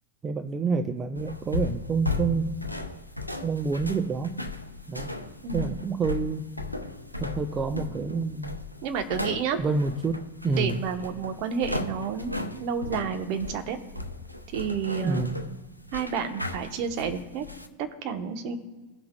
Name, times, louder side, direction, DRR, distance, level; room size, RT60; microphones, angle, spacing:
voice 1, 0.2-2.5 3.4-4.4 4.9-5.1 5.5-6.4 7.2-8.6 9.6-10.8 15.0-15.5, right 4 dB, 20° right, 8 dB, 0.5 m, -28 dB
sound 1, 1.1-17.7, left 3 dB, 90° left, 0.6 m, -36 dB
voice 2, 5.4-5.8 8.8-9.6 10.5-13.8 14.5-15.3 15.9-17.4 18.0-18.6, right 7 dB, 45° right, 6 dB, 1.0 m, -30 dB
16.5 x 5.7 x 2.2 m, 1.3 s
figure-of-eight pair, 90°, 0 cm